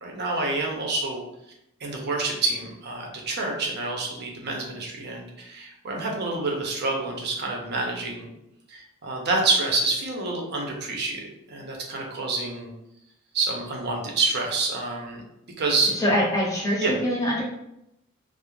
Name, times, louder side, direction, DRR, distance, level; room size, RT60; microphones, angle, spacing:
voice 1, 0.0-1.2 1.8-8.3 8.7-12.7 13.3-15.2 15.6-15.9 16.8-17.0, right 3 dB, 50° right, 0 dB, 0.6 m, -27 dB
voice 2, 15.9-17.4, equal, 15° left, -5 dB, 0.8 m, -24 dB
2.4 x 2.0 x 3.0 m, 0.84 s
head